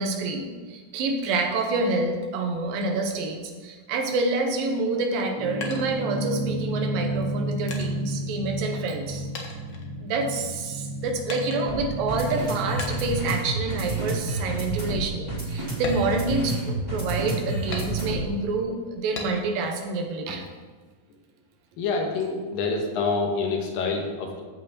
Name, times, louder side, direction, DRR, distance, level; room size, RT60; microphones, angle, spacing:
voice 1, 0.0-9.3 10.0-20.5, right 3 dB, 85° right, 3 dB, 2.8 m, -28 dB
sound 1, 5.3-18.4, right 2 dB, 5° right, 2.3 m, -30 dB
sound 2, 5.4-6.6 7.2-9.1 9.3-10.5 11.3-11.9 12.8-13.3 13.7-14.0 14.4-14.5 14.9-15.1 15.7-16.9 17.7-18.4 19.1-19.7 20.1-20.9, left 3 dB, 70° left, 1.1 m, -38 dB
voice 2, 21.8-24.4, left 4 dB, 85° left, 2 dB, 3.0 m, -27 dB
14.5 x 5.6 x 4.3 m, 1.4 s
omnidirectional pair, 3.9 m